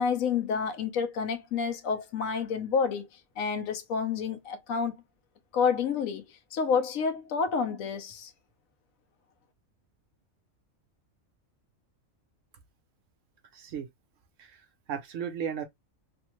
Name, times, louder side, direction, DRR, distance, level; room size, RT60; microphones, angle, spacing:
voice 1, 0.0-3.1 3.4-4.9 5.5-6.2 6.5-8.3, left 6 dB, 80° left, 1.1 m, -29 dB
voice 2, 13.5-13.9 14.4-14.6 14.9-15.6, right 8 dB, 70° right, 1.1 m, -35 dB
3.2 x 2.1 x 2.9 m
omnidirectional pair, 1.4 m